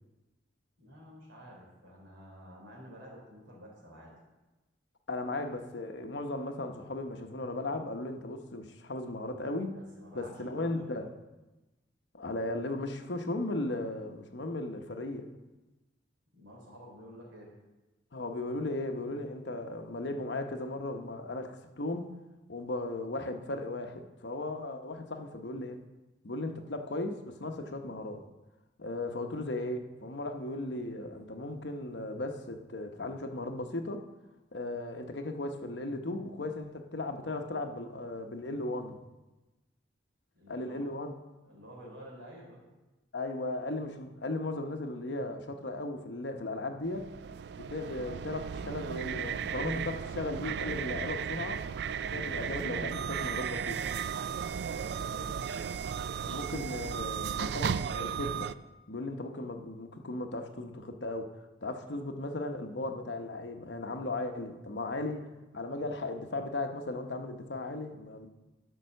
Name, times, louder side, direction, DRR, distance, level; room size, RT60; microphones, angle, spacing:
voice 1, 0.8-4.1 9.8-11.0 16.3-17.5 40.3-40.9 41.4-42.6 54.5-55.4, equal, 90° right, 3.6 m, -50 dB
voice 2, 5.1-9.8 10.1-11.1 12.1-15.3 18.1-22.2 22.5-25.8 26.2-28.2 28.8-34.0 34.5-39.0 40.5-41.1 43.1-47.1 47.6-51.6 51.9-53.8 56.3-58.5 58.9-61.3 61.6-65.3 65.5-68.3, left 2 dB, 70° left, 0.9 m, -36 dB
sound 1, 46.8-58.5, right 7 dB, 60° right, 0.3 m, -35 dB
11.5 x 5.5 x 6.5 m
head